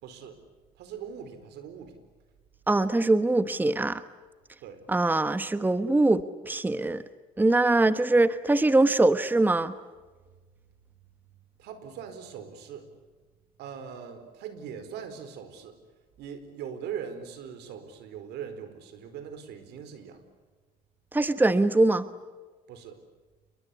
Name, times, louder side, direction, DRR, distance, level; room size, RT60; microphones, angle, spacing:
voice 1, 0.0-0.4 0.7-2.0 4.6-4.9 11.6-12.9 13.6-15.8 16.2-20.3 22.7-23.0, right 7 dB, 85° right, 10 dB, 4.5 m, -41 dB
voice 2, 2.7-4.0 4.9-7.0 7.4-9.7 21.1-22.1, right 2 dB, 10° right, 12 dB, 1.2 m, -23 dB
29.0 x 23.0 x 8.5 m, 1.3 s
cardioid pair, 110°, 17 cm